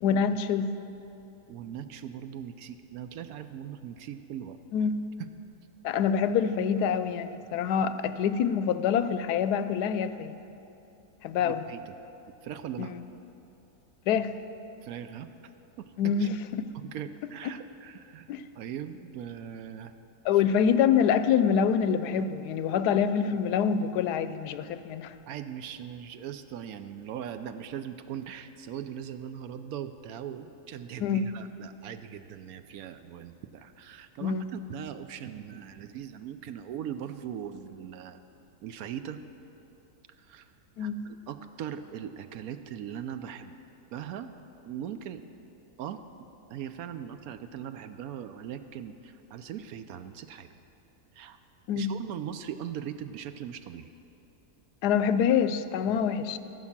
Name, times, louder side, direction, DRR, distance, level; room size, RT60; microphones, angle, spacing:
voice 1, 0.0-0.7 4.7-4.9 5.8-10.3 11.2-11.6 12.8-12.9 14.1-14.3 16.0-16.4 18.3-18.4 20.2-25.1 31.0-31.3 34.2-34.5 40.8-41.0 51.7-52.0 54.8-56.4, left 7 dB, 85° left, 12 dB, 1.1 m, -26 dB
voice 2, 1.5-4.6 11.4-11.8 12.4-13.0 14.8-15.3 15.8-16.3 16.7-18.3 18.6-19.9 25.3-38.2 38.6-39.2 40.2-40.5 40.8-43.6 43.9-44.3 44.7-45.2 45.8-46.0 46.5-50.5 51.1-51.4 51.8-53.9, right 9 dB, 70° right, 10 dB, 1.0 m, -40 dB
15.0 x 6.4 x 7.3 m, 2.9 s
omnidirectional pair, 1.7 m